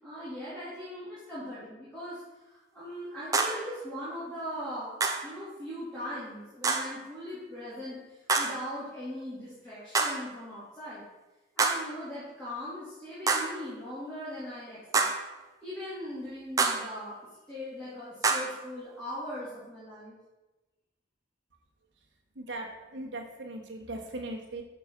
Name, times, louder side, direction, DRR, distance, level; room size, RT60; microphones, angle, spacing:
voice 1, 0.0-5.0 5.2-11.0 11.6-15.1 15.6-17.1 17.5-20.1, equal, 5° left, -11 dB, 2.3 m, -40 dB
sound 1, 3.3-3.7 5.0-5.3 6.6-7.0 8.3-8.7 9.9-10.3 11.6-12.0 13.3-13.6 14.9-15.3 16.6-17.0 18.2-18.6, right 4 dB, 20° right, 0.5 m, -27 dB
voice 2, 22.4-24.6, right 2 dB, 80° right, 1 dB, 1.2 m, -39 dB
6.2 x 4.5 x 5.9 m, 1.1 s
head